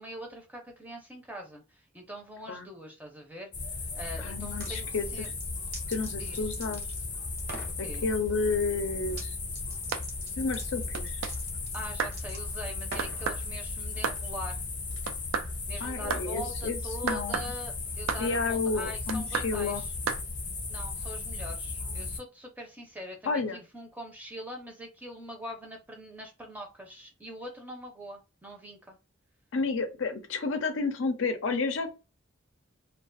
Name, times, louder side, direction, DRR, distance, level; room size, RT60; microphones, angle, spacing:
voice 1, 0.0-5.3 6.1-6.5 7.8-8.1 11.7-14.6 15.7-19.9 20.7-29.0, equal, 10° right, 0.5 m, -43 dB
sound 1, 3.5-22.2, left 3 dB, 40° left, 0.7 m, -36 dB
voice 2, 4.2-5.3 5.9-6.8 7.8-9.4 10.4-11.2 15.8-17.5 18.2-19.8 23.3-23.6 29.5-31.9, left 4 dB, 70° left, 0.5 m, -31 dB
sound 2, 4.4-4.7 5.2-7.0 7.4-7.8 9.1-9.3 9.5-13.3, right 3 dB, 50° right, 0.8 m, -44 dB
sound 3, 9.9-10.1 10.9-11.4 12.0-12.2 13.0-13.4 14.0-14.2 15.0-15.5 16.1-16.3 17.1-17.5 18.1-18.3 19.1-19.5 20.1-20.2, right 6 dB, 75° right, 0.3 m, -31 dB
2.4 x 2.2 x 2.5 m
head